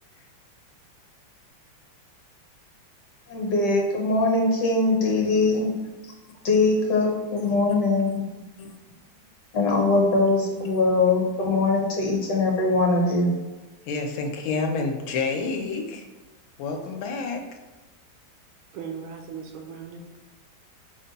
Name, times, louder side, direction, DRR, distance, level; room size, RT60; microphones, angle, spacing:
voice 1, 3.3-5.7 6.4-8.3 9.6-13.3, left 3 dB, 60° left, 0 dB, 1.3 m, -22 dB
voice 2, 13.9-16.0 16.6-17.4, left 4 dB, 80° left, 3 dB, 1.4 m, -28 dB
voice 3, 18.7-20.2, right 6 dB, 85° right, 3 dB, 1.5 m, -38 dB
5.4 x 2.2 x 3.9 m, 1.2 s
omnidirectional pair, 2.2 m